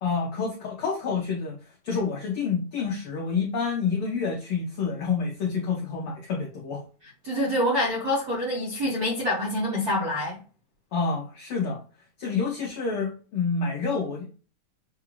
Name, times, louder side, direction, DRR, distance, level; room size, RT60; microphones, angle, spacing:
voice 1, 0.0-1.6 1.8-6.8 10.9-11.8 12.2-14.3, left 5 dB, 85° left, 1.2 m, -28 dB
voice 2, 7.2-10.4, left 1 dB, 65° right, 0.9 m, -26 dB
6.5 x 2.4 x 2.9 m
omnidirectional pair, 3.4 m